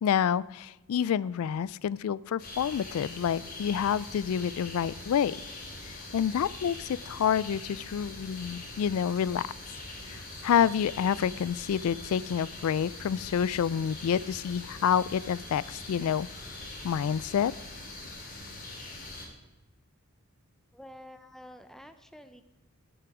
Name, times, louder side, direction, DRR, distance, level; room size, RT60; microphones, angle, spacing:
voice 1, 0.0-5.4 5.8-9.5 10.1-16.3 16.8-17.5, left 8 dB, 75° left, 21 dB, 0.3 m, -28 dB
sound 1, 2.4-19.3, left 2 dB, 40° left, 2.7 m, -43 dB
voice 2, 20.7-22.4, left 1 dB, ahead, 9 dB, 0.6 m, -49 dB
17.0 x 7.9 x 4.9 m, 1.1 s
head